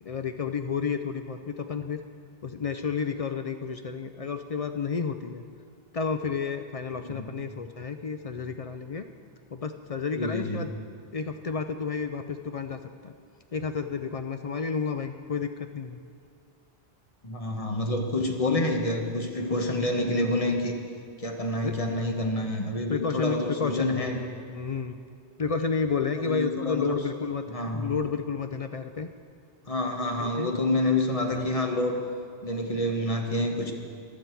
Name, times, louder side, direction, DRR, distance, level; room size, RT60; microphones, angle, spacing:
voice 1, 0.0-2.0 2.4-5.4 5.9-9.0 9.5-10.7 11.1-13.1 13.5-16.0 21.6-21.7 22.9-25.0 25.4-27.4 27.7-29.1 30.2-30.5 31.3-31.6, left 5 dB, 50° left, 8 dB, 0.4 m, -31 dB
voice 2, 6.9-7.3 10.1-10.6 17.2-20.7 21.2-24.2 26.2-27.0 27.5-27.9 29.7-32.0 32.4-33.7, left 1 dB, 35° left, 3 dB, 1.2 m, -28 dB
15.0 x 11.5 x 4.5 m, 2.3 s
omnidirectional pair, 1.0 m